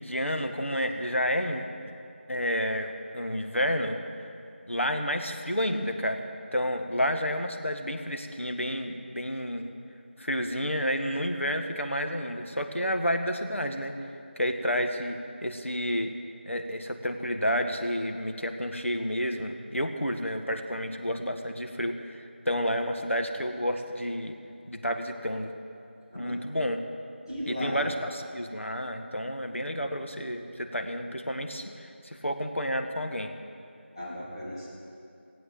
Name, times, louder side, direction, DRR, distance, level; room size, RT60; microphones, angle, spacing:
voice 1, 0.0-1.7 2.3-4.0 4.7-9.7 10.2-14.0 14.4-16.1 16.4-24.4 24.7-25.5 26.1-26.8 27.5-33.3, equal, 85° left, 5 dB, 1.5 m, -30 dB
voice 2, 27.3-27.8 33.9-34.7, equal, 20° left, -10 dB, 2.7 m, -35 dB
17.5 x 8.5 x 7.4 m, 2.5 s
figure-of-eight pair, 175°, 7 cm